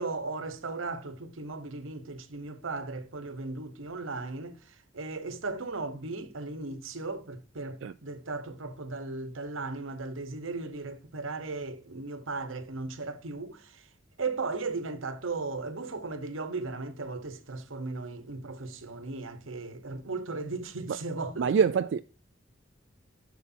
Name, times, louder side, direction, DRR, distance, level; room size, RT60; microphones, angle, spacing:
voice 1, 0.0-13.9 14.2-21.7, right 3 dB, 85° right, 1.1 m, -36 dB
voice 2, 21.4-22.0, right 6 dB, 65° right, 0.3 m, -24 dB
11.0 x 6.7 x 2.7 m
head